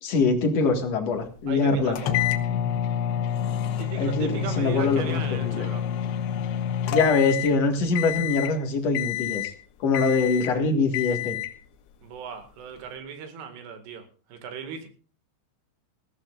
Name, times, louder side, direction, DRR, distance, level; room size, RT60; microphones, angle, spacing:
voice 1, 0.0-2.0 4.0-5.7 6.9-9.5 9.8-11.4, left 4 dB, 50° left, 3 dB, 2.4 m, -23 dB
voice 2, 1.5-2.3 3.8-5.9 12.0-14.9, right 6 dB, 80° right, 6 dB, 4.1 m, -37 dB
sound 1, 2.0-7.6 8.0-8.5 9.0-9.6 9.9-10.6 10.9-11.6, left 10 dB, 75° left, 3.0 m, -28 dB
20.5 x 16.0 x 2.5 m, 0.39 s
omnidirectional pair, 4.9 m